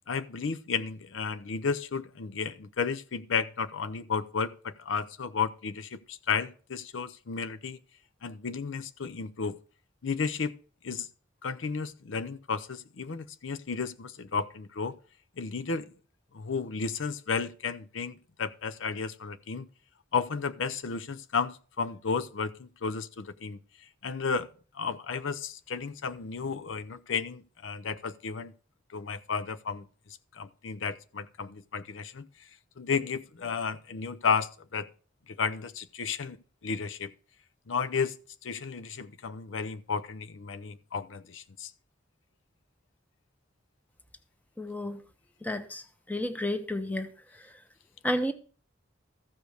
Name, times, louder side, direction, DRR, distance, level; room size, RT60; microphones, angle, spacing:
voice 1, 0.1-7.8 8.2-9.6 10.0-10.5 10.8-11.1 11.4-14.9 15.4-15.9 16.3-19.7 20.1-23.6 24.0-24.5 24.7-28.5 28.9-29.9 30.3-32.3 32.8-34.9 35.3-36.4 36.6-37.1 37.7-41.7, left 5 dB, 75° left, 0.6 m, -33 dB
voice 2, 44.6-45.0 45.4-45.8 46.1-47.1 48.0-48.3, left 1 dB, 10° left, 1.0 m, -31 dB
14.0 x 5.2 x 6.4 m
head